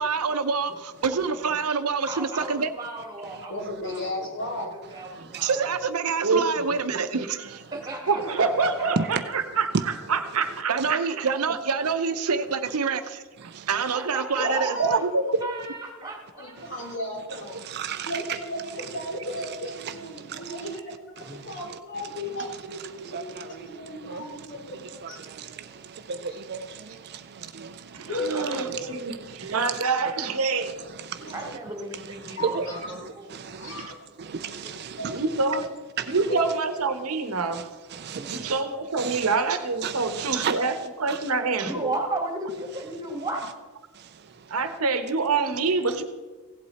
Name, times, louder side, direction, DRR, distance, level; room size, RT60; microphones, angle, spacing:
voice 1, 0.0-2.7 5.4-7.6 10.7-14.8 15.0-15.1 35.5-35.6, right 5 dB, 90° right, 0.8 m, -27 dB
voice 2, 2.1-5.6 7.7-9.1 13.9-15.1 15.4-16.8 21.2-21.5 28.3-28.5 31.3-33.3 38.1-38.5 41.6-43.5, right 2 dB, 20° right, 2.1 m, -36 dB
voice 3, 3.5-4.7 14.4-14.8 16.4-17.7 18.1-25.2 25.8-25.9 26.3-26.4 28.1-29.2 31.2-31.3 32.4-32.9 33.6-34.1 34.4-34.7 35.0-35.5 36.2-36.5, left 1 dB, 55° left, 3.4 m, -35 dB
voice 4, 6.2-6.7 8.1-11.3 14.8-15.4 27.9-30.7 35.0-35.7 36.1-37.7 38.3-41.9 44.5-46.0, right 4 dB, 70° right, 1.0 m, -26 dB
voice 5, 17.6-18.2 19.8-20.6 21.4-21.6 23.0-24.5 24.7-28.1 28.7-29.5 30.9-31.3 32.2-32.6 33.3-33.9 34.2-35.2 36.0-36.2 37.5-37.6 37.9-38.6 39.0-39.3 39.8-40.6 41.1-41.2 44.0-44.2, right 5 dB, 50° right, 0.5 m, -34 dB
16.0 x 8.1 x 4.2 m
head